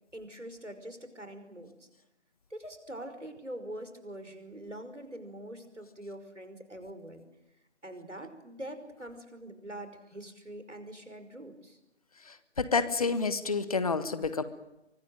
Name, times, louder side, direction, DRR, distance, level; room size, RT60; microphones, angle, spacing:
voice 1, 0.1-1.9 2.5-7.3 7.8-11.8, right 1 dB, 85° right, 8 dB, 5.4 m, -44 dB
voice 2, 12.3-14.4, left 4 dB, 30° left, 13 dB, 1.4 m, -29 dB
24.0 x 20.5 x 8.9 m, 0.89 s
figure-of-eight pair, 155°, 35 cm